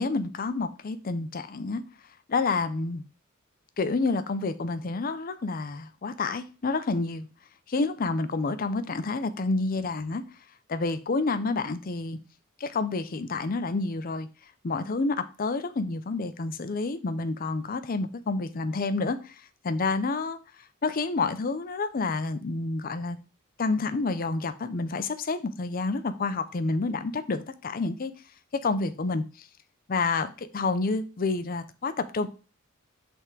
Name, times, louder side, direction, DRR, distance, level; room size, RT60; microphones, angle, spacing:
voice 1, 0.0-1.8 2.3-3.0 3.8-7.3 7.7-10.2 10.7-12.2 12.6-14.3 14.6-19.3 19.6-20.4 20.8-23.2 23.6-28.1 28.5-29.5 29.9-32.3, left 3 dB, 40° left, 0.5 m, -29 dB
5.7 x 3.6 x 4.5 m
head